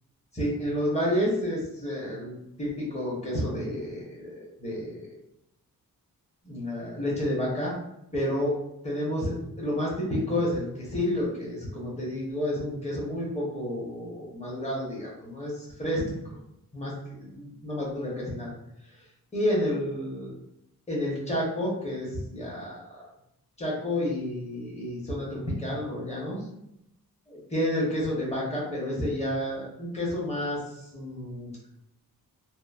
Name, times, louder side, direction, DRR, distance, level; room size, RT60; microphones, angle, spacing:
voice 1, 0.3-5.1 6.4-7.8 8.1-8.6 8.8-16.1 16.7-18.5 19.3-20.3 20.9-23.0 23.6-26.4 27.3-30.6 30.9-31.6, left 1 dB, 20° left, -5 dB, 0.9 m, -30 dB
2.9 x 2.0 x 2.4 m, 0.81 s
wide cardioid pair, 120°, 36 cm